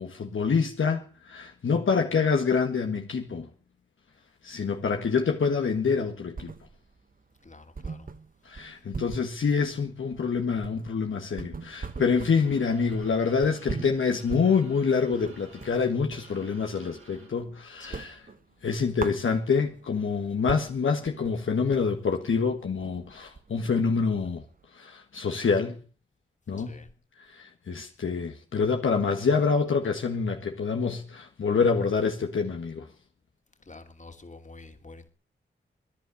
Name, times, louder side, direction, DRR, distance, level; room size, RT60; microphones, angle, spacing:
voice 1, 0.0-3.5 4.4-6.5 8.5-18.3 18.6-24.4 24.7-25.8 26.5-26.8 27.2-32.9, left 5 dB, 75° left, 1.7 m, -26 dB
sound 1, 5.8-7.0 7.3-7.4 7.7-16.3 16.7-17.5 17.8-19.8 20.2-20.3 20.5-24.6, right 4 dB, 40° right, 1.1 m, -40 dB
voice 2, 7.4-8.1 17.8-18.1 26.6-26.9 33.7-35.1, left 3 dB, 35° left, 2.8 m, -48 dB
sound 2, 11.6-17.4, right 3 dB, 85° right, 6.2 m, -55 dB
15.5 x 10.5 x 8.4 m
cardioid pair, 45°, 21 cm